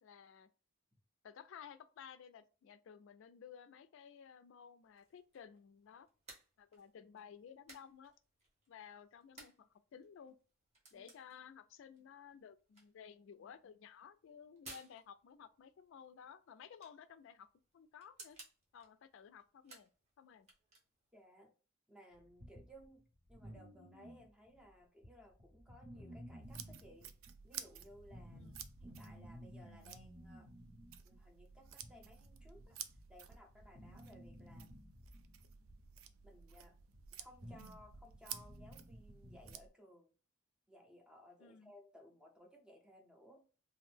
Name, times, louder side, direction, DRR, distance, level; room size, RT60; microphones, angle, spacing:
voice 1, 0.0-0.5 1.2-6.1 6.6-8.1 8.7-10.3 10.9-17.5 17.7-18.4 18.7-19.9 20.2-20.5 28.3-28.6 41.4-41.7, left 7 dB, 65° left, 0.3 m, -56 dB
sound 1, 4.8-21.2, right 2 dB, 35° right, 0.8 m, -62 dB
voice 2, 21.1-21.5 21.9-23.0 23.3-27.1 27.4-28.5 28.8-30.5 31.0-32.8 33.1-34.7 36.2-36.8 37.1-40.1 40.7-43.4, left 1 dB, 5° right, 0.5 m, -61 dB
sound 2, 22.1-24.7 25.0-39.5, equal, 60° right, 1.2 m, -56 dB
sound 3, 26.4-39.7, right 9 dB, 75° right, 0.3 m, -53 dB
2.5 x 2.0 x 3.2 m
head